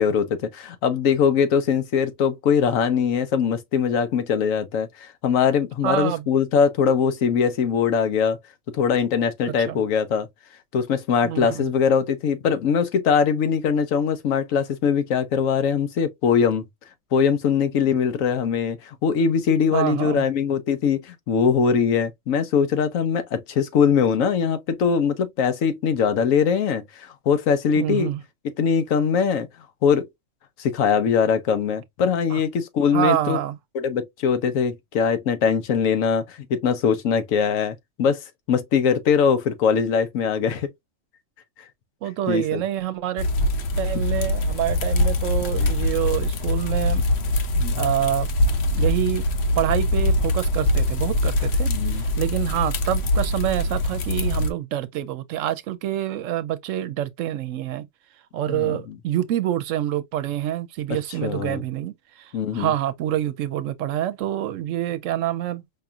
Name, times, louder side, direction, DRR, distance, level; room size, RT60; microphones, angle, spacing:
voice 1, 0.0-8.4 8.7-10.3 10.7-16.6 17.1-28.1 28.6-29.5 29.8-30.1 30.6-33.4 33.7-40.7 42.3-42.6 47.5-47.8 51.7-52.0 58.5-59.0 61.2-61.6 62.3-62.7, left 6 dB, 90° left, 1.2 m, -22 dB
voice 2, 5.8-6.2 9.5-9.8 11.2-11.7 19.7-20.3 27.7-28.2 32.3-32.4 32.9-33.6 42.0-43.3 43.8-47.1 47.8-48.3 48.7-49.3 49.6-57.9 58.3-65.6, right 12 dB, 80° right, 0.9 m, -26 dB
sound 1, 43.2-54.5, left 1 dB, 60° left, 0.9 m, -23 dB
5.2 x 2.4 x 2.6 m
omnidirectional pair, 1.3 m